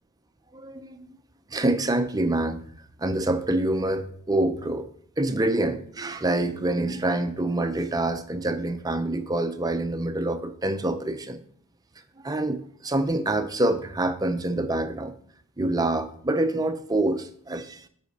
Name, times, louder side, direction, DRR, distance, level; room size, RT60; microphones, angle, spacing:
voice 1, 0.5-1.1 1.5-2.7 3.0-4.9 5.2-11.4 12.2-15.1 15.6-17.9, right 2 dB, 15° right, 9 dB, 0.5 m, -26 dB
8.1 x 5.0 x 5.2 m, 0.62 s
head